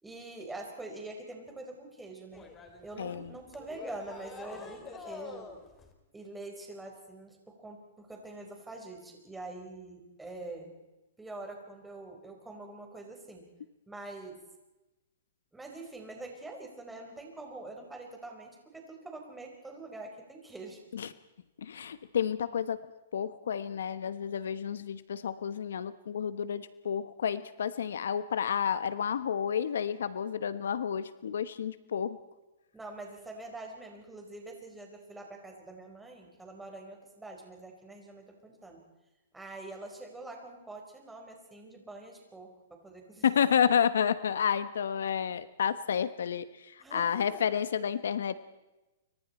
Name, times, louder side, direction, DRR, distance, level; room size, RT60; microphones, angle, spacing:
voice 1, 0.0-2.5 2.8-5.5 6.1-10.7 11.2-13.4 13.9-14.4 15.5-20.8 32.7-38.8 39.3-43.5 46.8-47.4, right 2 dB, 5° right, 1 dB, 4.4 m, -45 dB
sound 1, 2.3-5.9, left 4 dB, 15° left, 3.0 m, -46 dB
voice 2, 21.6-22.8 23.1-32.2 43.2-48.4, left 8 dB, 80° left, 14 dB, 1.0 m, -30 dB
29.5 x 25.0 x 4.3 m, 1.0 s
hypercardioid pair, 150°, 0 cm